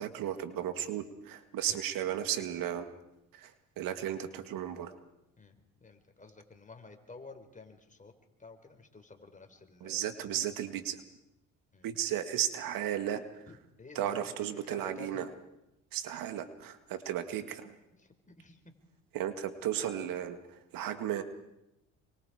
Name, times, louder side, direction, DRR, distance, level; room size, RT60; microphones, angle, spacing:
voice 1, 0.0-2.9 3.3-4.9 9.8-11.0 11.8-13.5 14.0-15.3 15.9-17.7 19.1-21.2, right 10 dB, 65° right, 10 dB, 1.9 m, -35 dB
voice 2, 5.4-8.1 8.4-10.0 11.7-11.9 13.5-15.3 17.9-18.7, left 3 dB, 20° left, 5 dB, 4.2 m, -52 dB
26.5 x 24.5 x 4.9 m, 0.88 s
supercardioid pair, 70°, 36 cm